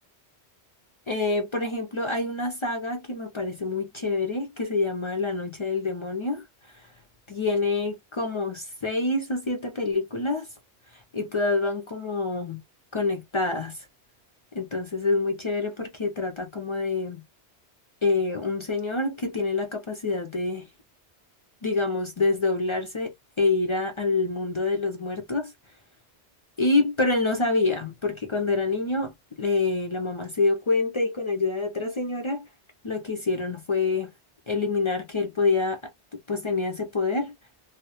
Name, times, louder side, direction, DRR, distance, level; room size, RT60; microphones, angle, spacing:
voice 1, 1.1-6.4 6.7-6.9 7.3-10.5 10.9-12.6 12.9-13.9 14.5-17.2 18.0-20.7 21.6-25.5 26.6-29.1 29.4-32.5 32.8-34.1 34.5-35.9 36.3-37.3, left 3 dB, 50° left, 0.3 m, -26 dB
2.2 x 2.0 x 2.8 m
omnidirectional pair, 1.1 m